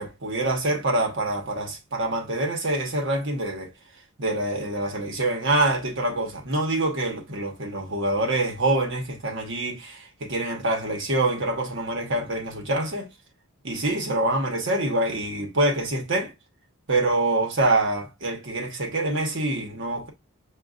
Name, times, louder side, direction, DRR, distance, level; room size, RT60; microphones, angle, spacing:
voice 1, 0.0-3.7 4.2-13.1 13.6-16.3 16.9-20.1, right 2 dB, 60° right, 1.1 m, -25 dB
6.6 x 2.3 x 2.4 m
head